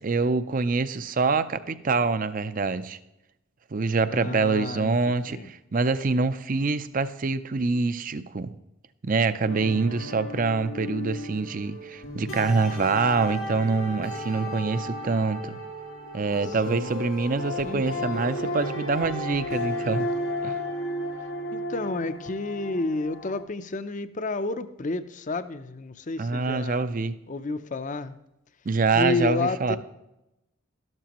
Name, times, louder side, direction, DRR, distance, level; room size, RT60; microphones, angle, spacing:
voice 1, 0.0-3.0 3.7-8.5 9.0-15.6 16.1-20.1 20.4-20.6 26.2-27.1 28.7-29.8, right 4 dB, 40° right, 12 dB, 0.5 m, -25 dB
voice 2, 4.1-5.5 9.6-10.1 16.5-17.0 17.6-17.9 21.5-26.9 27.3-28.2 28.9-29.8, left 3 dB, 40° left, 12 dB, 0.6 m, -31 dB
sound 1, 9.4-23.4, left 1 dB, 85° left, 3.7 m, -34 dB
12.5 x 12.0 x 3.0 m, 0.89 s
head